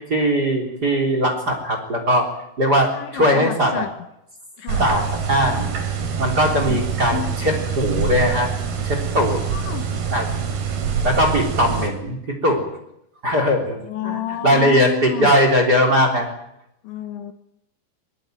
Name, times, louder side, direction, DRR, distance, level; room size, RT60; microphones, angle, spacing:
voice 1, 0.1-2.3 2.6-3.9 4.8-5.7 6.2-8.5 8.8-9.4 10.1-10.3 11.0-12.6 13.2-13.8 14.0-16.3, equal, 25° right, 4 dB, 3.4 m, -19 dB
voice 2, 2.9-3.9 4.6-4.9 6.6-6.9 7.1-7.6 9.3-9.9 13.8-15.3 16.8-17.3, left 12 dB, 75° left, 10 dB, 3.3 m, -30 dB
sound 1, 4.7-11.9, right 6 dB, 55° right, 4.8 m, -25 dB
21.5 x 21.0 x 9.2 m, 0.80 s
omnidirectional pair, 5.6 m